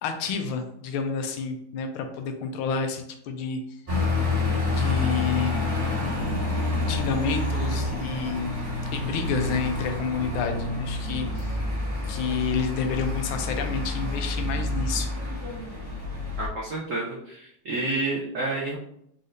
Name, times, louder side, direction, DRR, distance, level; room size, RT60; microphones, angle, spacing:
voice 1, 0.0-3.6 4.5-5.5 6.9-8.5 8.9-11.6 12.1-15.1, left 5 dB, 85° left, 6 dB, 1.5 m, -29 dB
sound 1, 3.9-16.5, left 2 dB, 20° right, 1.7 m, -28 dB
voice 2, 16.4-18.8, right 2 dB, 85° right, -4 dB, 0.6 m, -29 dB
4.2 x 4.0 x 2.5 m, 0.74 s
omnidirectional pair, 2.3 m